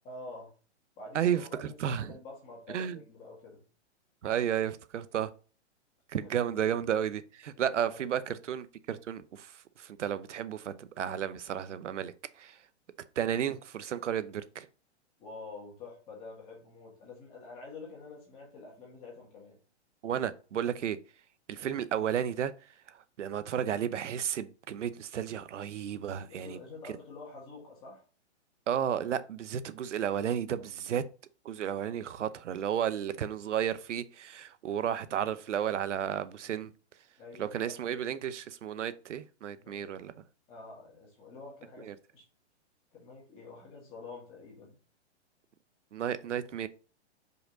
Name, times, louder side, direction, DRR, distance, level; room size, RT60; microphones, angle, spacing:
voice 1, 0.0-0.5 1.0-3.6 6.1-6.3 7.5-8.2 15.2-19.6 26.1-28.0 30.6-30.7 37.2-38.0 39.5-40.1 40.5-42.3 42.9-44.8, left 3 dB, 15° left, 1.9 m, -48 dB
voice 2, 1.8-2.1 2.7-3.0 4.2-5.3 6.1-9.5 9.8-12.1 12.4-12.5 13.2-14.7 20.0-21.0 21.5-22.5 23.2-26.6 28.7-31.0 31.4-36.7 37.4-40.1 41.9-42.0 45.9-46.7, right 9 dB, 90° right, 0.8 m, -32 dB
5.3 x 4.5 x 3.9 m
hypercardioid pair, 170°, 35 cm